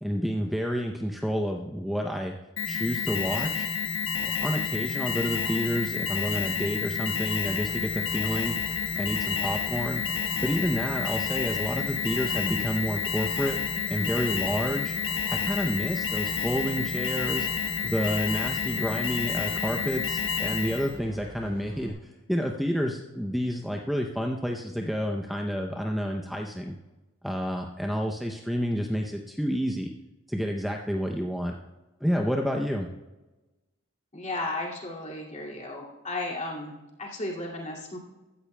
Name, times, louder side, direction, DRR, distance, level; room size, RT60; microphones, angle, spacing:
voice 1, 0.0-2.3 2.7-3.7 4.2-8.6 9.0-10.0 10.4-13.6 13.9-14.9 15.3-17.5 17.8-26.8 27.2-29.9 30.3-31.6 32.0-32.9, equal, ahead, 1 dB, 0.5 m, -29 dB
Alarm, 2.6-21.0, left 6 dB, 60° left, 1.3 m, -30 dB
sound 1, 7.5-21.9, right 1 dB, 25° right, 2.5 m, -45 dB
voice 2, 34.1-36.7 37.0-38.0, left 2 dB, 35° left, -2 dB, 2.3 m, -34 dB
15.5 x 13.0 x 2.2 m, 1.1 s
head